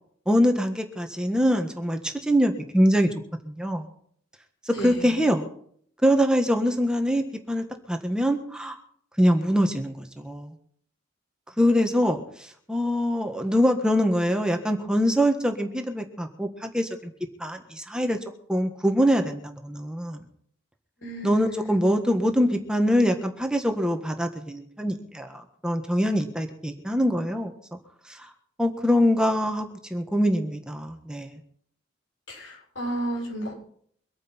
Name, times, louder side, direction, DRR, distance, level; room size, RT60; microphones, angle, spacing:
voice 1, 0.3-3.1 3.4-3.8 4.6-5.4 6.0-8.8 9.2-10.5 11.6-16.9 17.4-18.2 18.5-20.2 21.2-27.8 28.1-28.3 28.6-31.4, equal, 5° right, 4 dB, 1.5 m, -24 dB
voice 2, 4.7-5.2 21.0-21.9 32.3-33.5, right 1 dB, 85° left, -1 dB, 7.2 m, -33 dB
24.0 x 9.4 x 4.5 m, 0.62 s
head